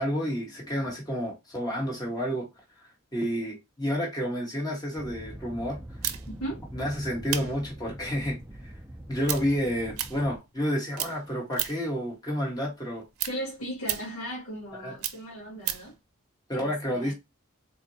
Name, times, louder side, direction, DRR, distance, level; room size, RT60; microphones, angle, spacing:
voice 1, 0.0-2.5 2.8-5.8 6.7-8.4 8.6-8.7 9.1-13.0 14.8-15.0 16.5-17.1, equal, 15° left, 1.3 m, -30 dB
sound 1, 5.0-10.4, right 1 dB, 10° right, 0.3 m, -43 dB
sound 2, 6.0-10.7 10.9-12.0 12.3-16.0, right 12 dB, 80° right, 0.6 m, -35 dB
voice 2, 13.3-16.0 16.5-17.1, equal, 85° left, 2.2 m, -37 dB
3.8 x 2.5 x 2.7 m
head